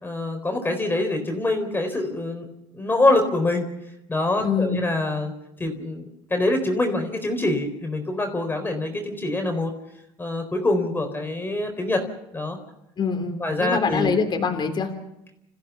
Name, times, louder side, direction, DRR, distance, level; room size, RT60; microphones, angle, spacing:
voice 1, 0.0-2.5 2.7-3.7 4.1-5.3 5.6-6.0 6.3-9.7 10.2-12.0 12.3-12.6 13.4-14.1, left 2 dB, 15° left, 5 dB, 4.2 m, -24 dB
voice 2, 4.4-4.9 13.0-14.9, left 5 dB, 40° left, 4 dB, 3.5 m, -24 dB
28.5 x 15.0 x 7.2 m, 0.85 s
supercardioid pair, 100°, 12 cm